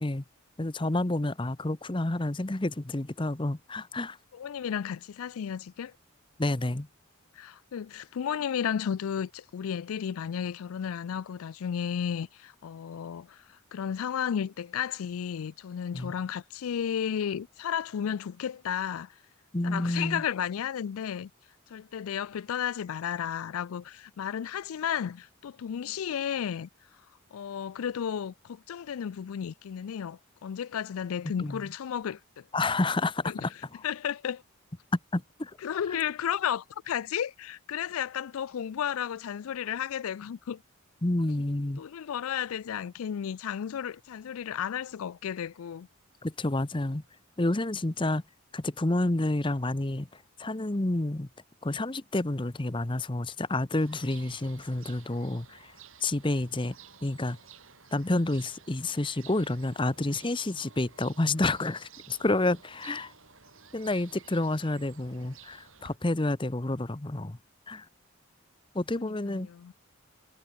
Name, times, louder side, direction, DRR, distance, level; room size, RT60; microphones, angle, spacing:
voice 1, 0.6-4.2 6.4-6.9 15.9-16.1 19.5-20.2 31.4-31.6 32.5-33.8 35.1-35.6 35.9-36.0 41.0-41.8 46.2-47.0 47.4-48.2 48.5-51.3 51.6-55.7 56.0-56.8 57.0-57.4 57.9-63.1 63.7-67.4 67.7-67.9 68.7-69.5, left 2 dB, 20° left, 0.8 m, -29 dB
voice 2, 4.3-5.9 7.4-13.4 13.7-19.1 19.6-21.3 21.7-26.7 27.3-32.4 33.3-33.5 33.8-34.4 35.6-40.6 41.8-45.9 68.9-69.7, left 8 dB, 80° left, 0.4 m, -33 dB
sound 1, 53.8-66.0, right 7 dB, 65° right, 6.3 m, -54 dB
head